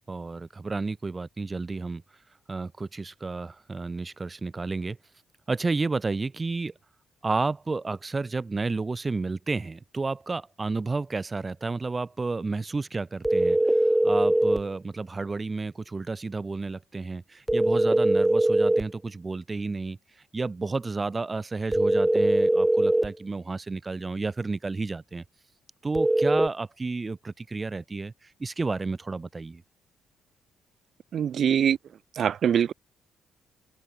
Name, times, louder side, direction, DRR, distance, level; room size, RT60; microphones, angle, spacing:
voice 1, 0.1-2.0 2.5-5.0 5.5-6.7 7.2-25.2 25.8-29.6, right 3 dB, 25° right, 4.6 m, -31 dB
sound 1, 13.2-14.7 17.5-18.9 21.7-23.1 26.0-26.5, right 1 dB, 10° right, 5.2 m, -21 dB
voice 2, 31.1-31.8 32.2-32.7, right 8 dB, 60° right, 5.2 m, -23 dB
open air
cardioid pair, 90°, 0 cm